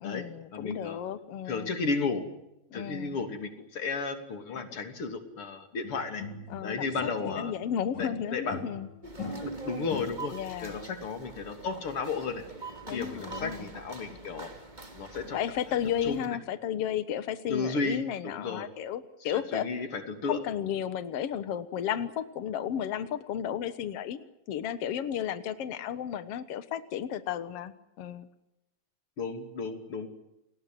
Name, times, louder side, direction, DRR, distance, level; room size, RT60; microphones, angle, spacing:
voice 1, 0.0-1.7 2.7-3.2 4.6-4.7 6.5-8.9 10.3-10.8 12.9-13.7 15.3-19.7 20.2-28.3, left 9 dB, 85° left, 12 dB, 1.3 m, -33 dB
voice 2, 0.5-1.0 1.5-2.3 2.7-6.2 6.6-7.6 8.0-8.6 9.4-10.3 10.6-12.4 12.9-14.5 14.9-15.4 16.0-16.3 17.5-18.7 19.3-20.4 29.2-30.1, left 4 dB, 35° left, 7 dB, 3.4 m, -33 dB
sound 1, 5.8-7.6 7.9-10.5, left 4 dB, 50° left, 6.8 m, -42 dB
sound 2, 9.0-16.3, right 3 dB, 15° right, 2.4 m, -44 dB
29.5 x 21.0 x 7.6 m, 0.88 s
omnidirectional pair, 4.6 m